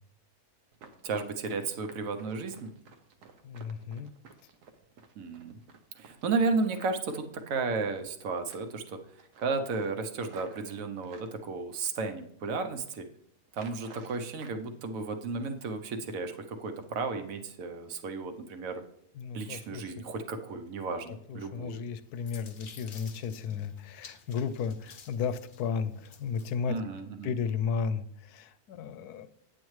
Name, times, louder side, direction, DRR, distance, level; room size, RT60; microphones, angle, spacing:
Run, 0.7-8.1 8.4-8.9 9.2-11.3 11.9-12.5 12.7-13.0 13.5-14.6 14.9-15.7 16.1-16.3 16.7-17.0 17.3-17.5 17.9-18.1 18.4-18.6, right 5 dB, 85° right, 1.3 m, -54 dB
voice 1, 1.0-2.7 5.2-5.6 5.9-9.0 9.4-13.1 13.5-18.8 19.3-21.8 26.7-27.3, right 4 dB, 65° right, 7 dB, 1.1 m, -33 dB
voice 2, 3.4-4.1 19.1-19.9 21.1-26.8 27.2-29.3, left 6 dB, 80° left, 13 dB, 1.1 m, -34 dB
sound 1, 21.8-26.6, left 6 dB, 55° left, 0.5 m, -53 dB
8.6 x 8.4 x 3.1 m, 0.72 s
omnidirectional pair, 1.7 m